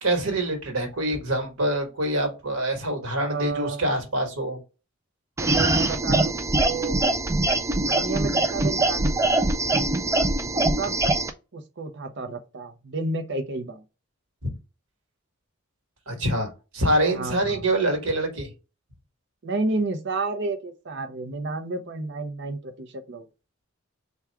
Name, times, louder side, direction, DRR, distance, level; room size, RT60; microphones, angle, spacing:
voice 1, 0.0-4.6 14.4-14.5 16.1-18.5, right 1 dB, 90° right, 1.3 m, -25 dB
voice 2, 3.2-4.0 5.4-7.0 7.8-9.2 10.5-10.9 11.5-13.8 17.1-17.7 19.4-23.3, right 3 dB, 55° right, 0.6 m, -31 dB
sound 1, 5.4-11.3, right 2 dB, 15° right, 0.3 m, -23 dB
3.5 x 2.3 x 4.4 m
head